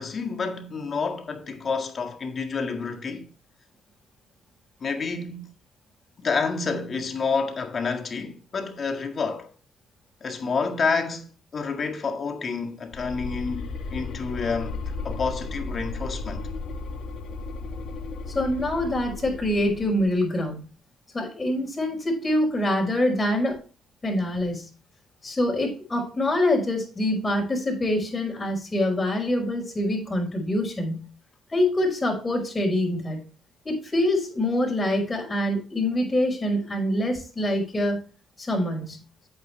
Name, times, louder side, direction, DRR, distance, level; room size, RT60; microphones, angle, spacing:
voice 1, 0.0-3.3 4.8-5.4 6.2-9.5 10.2-11.3 11.5-16.5, left 4 dB, 45° left, 1.8 m, -29 dB
sound 1, 12.9-20.2, left 3 dB, 70° left, 1.9 m, -34 dB
voice 2, 18.3-20.6 21.1-23.6 24.0-24.7 25.2-31.1 31.5-33.2 33.6-38.0 38.4-39.0, left 1 dB, 25° left, 5.6 m, -25 dB
8.8 x 8.6 x 3.3 m
cardioid pair, 90°, 0 cm